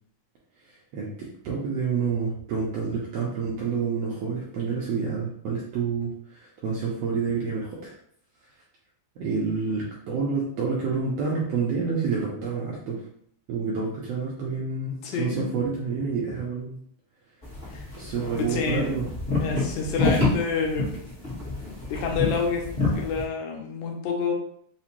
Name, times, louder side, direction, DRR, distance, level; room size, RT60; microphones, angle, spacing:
voice 1, 0.9-8.0 9.2-13.0 13.5-16.8 17.9-19.1, right 5 dB, 80° right, -4 dB, 1.5 m, -28 dB
voice 2, 15.0-15.5 17.7-17.9 18.3-18.9 19.4-20.9 21.9-22.7 22.9-24.3, left 5 dB, 80° left, 1 dB, 2.1 m, -28 dB
sound 1, 17.4-23.2, left 3 dB, 35° left, 0.7 m, -28 dB
5.0 x 2.1 x 2.9 m, 0.64 s
omnidirectional pair, 3.5 m